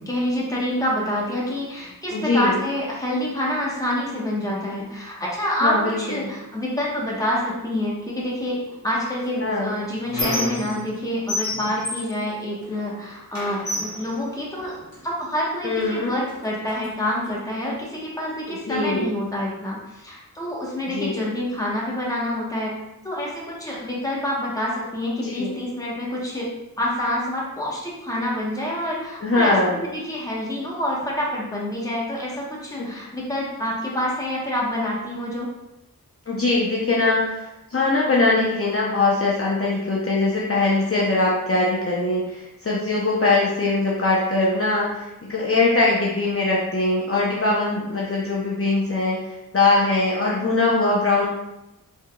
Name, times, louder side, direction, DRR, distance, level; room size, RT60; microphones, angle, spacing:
voice 1, 0.0-14.8 15.0-22.7 23.0-26.5 26.8-35.5, left 1 dB, 10° left, -4 dB, 1.0 m, -27 dB
voice 2, 2.1-2.6 5.6-6.3 9.4-9.7 15.6-16.1 18.5-19.1 20.9-21.1 25.2-25.6 29.2-29.8 32.8-32.9 36.3-51.2, left 3 dB, 40° left, -5 dB, 0.6 m, -22 dB
Squeak, 9.2-11.0 11.3-12.9 13.3-15.0 15.8-15.9 16.3-17.3, left 1 dB, 80° left, 1.4 m, -31 dB
3.6 x 3.5 x 2.2 m, 0.93 s
wide cardioid pair, 60°, 35 cm